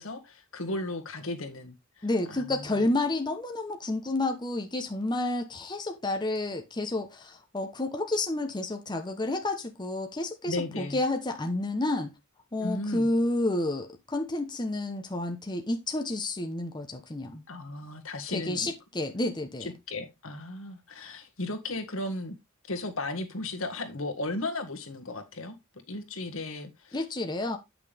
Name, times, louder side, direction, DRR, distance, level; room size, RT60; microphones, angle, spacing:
voice 1, 0.0-2.9 10.4-11.0 12.6-13.1 17.5-18.7 19.6-22.3 22.7-25.6 25.9-27.0, left 2 dB, 75° left, 1.7 m, -35 dB
voice 2, 2.0-12.1 12.5-17.4 18.3-19.7 26.9-27.6, left 2 dB, 20° left, 1.0 m, -30 dB
9.1 x 6.0 x 3.4 m
head